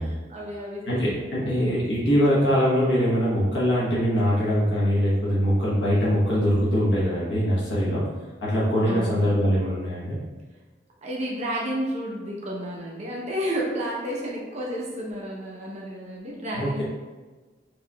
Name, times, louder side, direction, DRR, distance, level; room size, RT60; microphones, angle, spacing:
voice 1, 0.0-1.6 8.8-9.4 11.0-16.8, equal, 40° right, -4 dB, 0.8 m, -32 dB
voice 2, 0.9-8.0 8.4-10.2 16.5-16.8, equal, 80° left, -7 dB, 1.1 m, -22 dB
6.2 x 2.9 x 2.3 m, 1.3 s
head